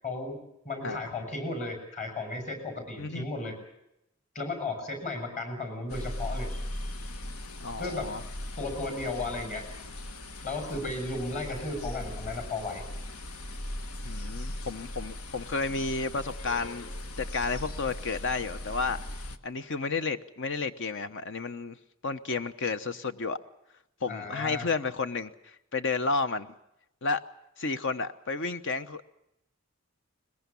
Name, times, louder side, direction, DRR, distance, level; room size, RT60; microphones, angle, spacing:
voice 1, 0.0-0.4 0.6-3.6 4.3-6.5 7.8-8.1 8.6-9.6 10.4-12.8 24.1-24.7, left 2 dB, 35° left, 5 dB, 6.6 m, -34 dB
sound 1, 5.9-19.4, left 1 dB, 85° left, 1.5 m, -39 dB
voice 2, 7.6-8.2 14.0-16.9 17.2-19.0 19.4-21.8 22.0-23.4 24.0-26.5 27.0-27.2 27.6-29.1, left 4 dB, 60° left, 11 dB, 1.0 m, -32 dB
22.0 x 21.5 x 7.0 m, 0.83 s
head